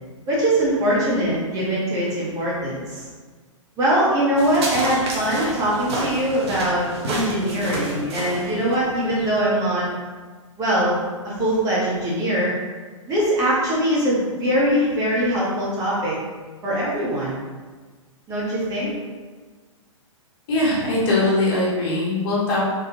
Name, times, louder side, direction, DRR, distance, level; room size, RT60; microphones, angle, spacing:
voice 1, 0.3-3.1 3.8-9.9 10.6-11.0 11.2-12.5 13.1-16.2 16.6-17.4 18.3-18.9, right 1 dB, 20° right, -6 dB, 1.0 m, -22 dB
sound 1, 4.4-9.4, right 1 dB, 55° right, 1.0 m, -30 dB
voice 2, 20.5-22.6, left 2 dB, 40° left, -6 dB, 1.5 m, -21 dB
3.8 x 3.6 x 2.7 m, 1.4 s
figure-of-eight pair, 115°, 17 cm